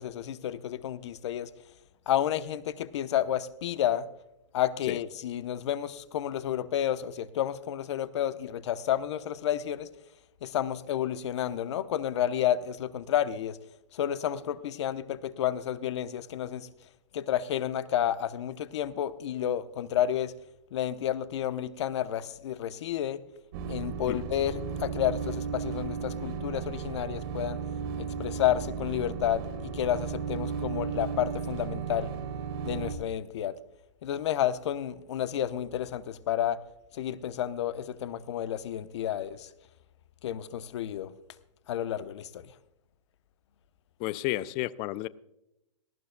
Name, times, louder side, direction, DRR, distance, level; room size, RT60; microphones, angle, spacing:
voice 1, 0.0-1.5 2.1-4.1 4.5-9.9 10.4-13.6 13.9-16.7 17.1-20.3 20.7-23.2 23.7-27.6 28.0-32.1 32.6-33.5 34.0-36.6 36.9-39.5 40.2-41.1 41.7-42.5, left 11 dB, 60° left, 0.8 m, -30 dB
sound 1, 23.5-32.9, right 6 dB, 50° right, 1.6 m, -35 dB
voice 2, 44.0-45.1, left 17 dB, 30° left, 0.4 m, -31 dB
18.5 x 15.0 x 2.2 m
hypercardioid pair, 135°, 16 cm